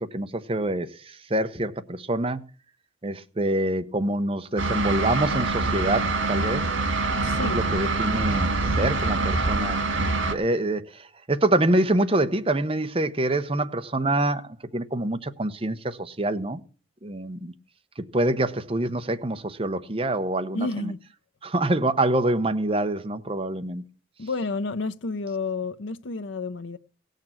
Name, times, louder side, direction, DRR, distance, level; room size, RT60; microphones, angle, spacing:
voice 1, 0.0-2.4 3.0-6.7 7.4-16.6 17.0-17.5 18.0-20.9 21.4-23.8, right 1 dB, 30° right, 0.8 m, -26 dB
sound 1, 4.6-10.3, right 3 dB, 85° right, 2.1 m, -25 dB
voice 2, 7.2-7.6 20.5-21.0 24.2-26.8, left 3 dB, 80° left, 0.6 m, -30 dB
17.0 x 6.6 x 7.5 m
head